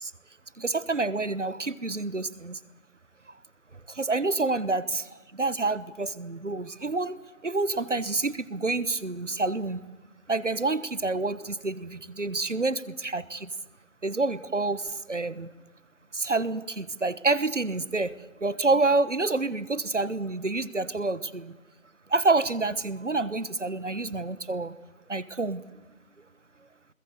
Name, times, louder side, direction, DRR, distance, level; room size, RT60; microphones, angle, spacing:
voice 1, 0.6-2.6 3.9-5.0 5.3-7.2 7.4-9.8 10.3-13.5 14.0-15.5 16.1-18.1 18.4-21.5 22.1-24.7 25.1-25.6, right 3 dB, 65° right, 17 dB, 1.2 m, -28 dB
22.0 x 21.0 x 8.1 m, 1.2 s
figure-of-eight pair, 170°, 40 cm